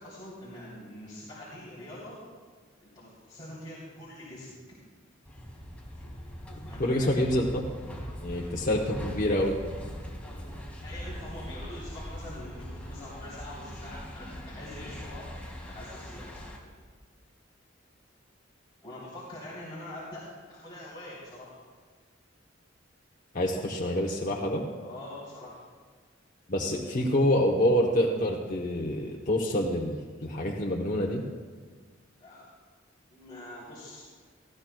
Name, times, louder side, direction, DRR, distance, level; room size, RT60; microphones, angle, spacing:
voice 1, 0.0-2.2 2.8-4.5 6.7-7.1 10.2-15.2 15.7-16.3 18.8-21.5 24.8-25.6 32.2-32.4 33.1-34.1, left 1 dB, 25° left, -9 dB, 3.2 m, -44 dB
sound 1, 5.3-16.6, equal, 5° left, 1.9 m, -41 dB
voice 2, 6.8-7.6 8.2-9.6 23.3-24.6 26.5-31.2, left 1 dB, 45° left, -1 dB, 0.8 m, -27 dB
18.5 x 14.0 x 2.2 m, 1.5 s
head